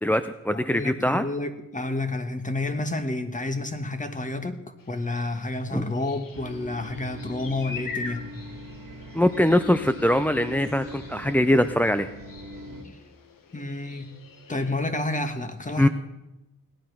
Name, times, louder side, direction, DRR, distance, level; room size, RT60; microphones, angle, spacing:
voice 1, 0.0-1.3 5.7-5.8 9.1-12.1 15.8-15.9, left 1 dB, 5° left, 9 dB, 0.4 m, -22 dB
voice 2, 0.5-4.6 4.9-8.3 13.5-14.1 14.5-15.9, left 2 dB, 25° left, 8 dB, 1.3 m, -30 dB
sound 1, 4.8-14.8, left 4 dB, 80° left, 1.4 m, -44 dB
sound 2, 6.3-12.8, equal, 85° right, 2.2 m, -41 dB
17.5 x 11.0 x 5.8 m, 0.99 s
wide cardioid pair, 115°, 33 cm